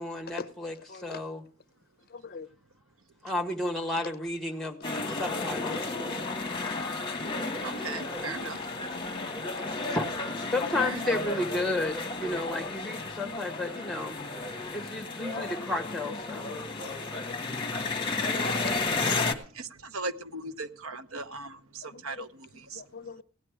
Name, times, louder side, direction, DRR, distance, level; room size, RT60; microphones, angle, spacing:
voice 1, 0.0-1.4 3.2-5.9 9.9-10.0 10.5-14.2 14.7-16.5, left 2 dB, ahead, 1.5 m, -32 dB
voice 2, 0.9-1.2 2.1-2.5 5.3-5.6 5.9-6.0 8.3-8.5 8.8-8.9 16.5-17.0 18.0-18.1 18.4-18.5 21.9-22.2 22.8-23.2, left 4 dB, 45° left, 0.6 m, -42 dB
sound 1, 4.8-19.3, left 3 dB, 20° left, 1.4 m, -33 dB
voice 3, 7.6-8.6 10.8-11.0 18.0-22.8, right 3 dB, 75° right, 0.8 m, -39 dB
16.5 x 9.9 x 4.9 m
head